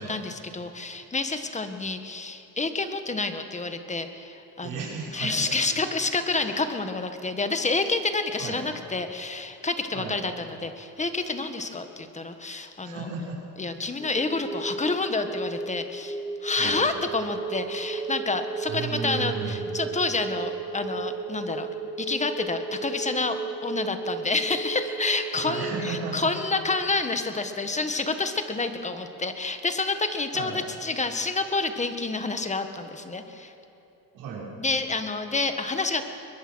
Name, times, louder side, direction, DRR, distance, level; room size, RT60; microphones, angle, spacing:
voice 1, 0.0-4.7 5.1-13.0 13.6-21.7 22.0-33.5 34.6-36.0, left 3 dB, 20° left, 8 dB, 1.6 m, -29 dB
voice 2, 4.6-5.8 6.3-6.5 8.4-8.6 9.9-10.2 12.8-13.4 16.6-16.8 18.6-19.7 25.4-26.3 30.3-30.6 34.1-34.5, right 4 dB, 80° right, -4 dB, 6.0 m, -34 dB
sound 1, 14.0-26.9, right 4 dB, ahead, 2.9 m, -34 dB
22.5 x 21.5 x 6.4 m, 3.0 s
cardioid pair, 110°, 35 cm